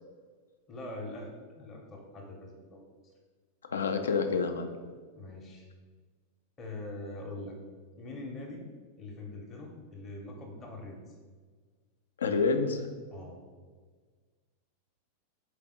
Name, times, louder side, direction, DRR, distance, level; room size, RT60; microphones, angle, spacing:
voice 1, 0.7-1.3 1.5-2.9 5.1-5.6 6.6-7.6 8.0-8.6 9.0-11.0 13.1-13.4, left 2 dB, 25° left, -1 dB, 0.8 m, -43 dB
voice 2, 3.7-4.7 12.2-12.9, left 4 dB, 70° left, 7 dB, 0.4 m, -28 dB
4.1 x 3.3 x 3.6 m, 1.5 s
figure-of-eight pair, 90°, 0 cm